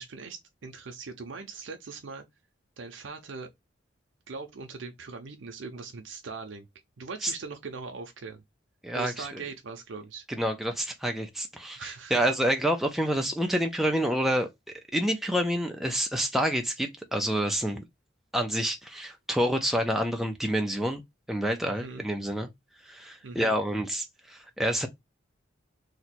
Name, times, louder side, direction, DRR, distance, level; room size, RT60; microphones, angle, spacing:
voice 1, 0.0-2.2 2.8-3.5 4.3-6.7 7.0-8.4 8.9-10.3 11.8-12.3 21.6-22.0 23.2-23.6, right 4 dB, 75° right, 0.6 m, -40 dB
voice 2, 8.8-9.3 10.3-14.5 14.9-17.8 18.3-21.0 21.3-22.5 22.8-24.9, equal, ahead, 0.4 m, -28 dB
2.9 x 2.2 x 4.1 m
head